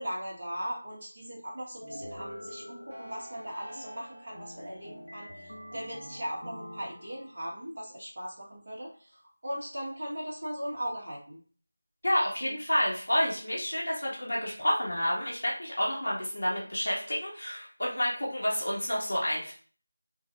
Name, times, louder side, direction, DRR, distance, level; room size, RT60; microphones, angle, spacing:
voice 1, 0.0-9.1 9.4-11.4, equal, 40° right, -5 dB, 2.0 m, -38 dB
sound 1, 1.8-7.5, equal, 85° left, 1.7 m, -45 dB
voice 2, 12.0-19.5, equal, 60° left, -4 dB, 2.1 m, -29 dB
4.5 x 4.1 x 2.6 m, 0.42 s
figure-of-eight pair, 170°, 0 cm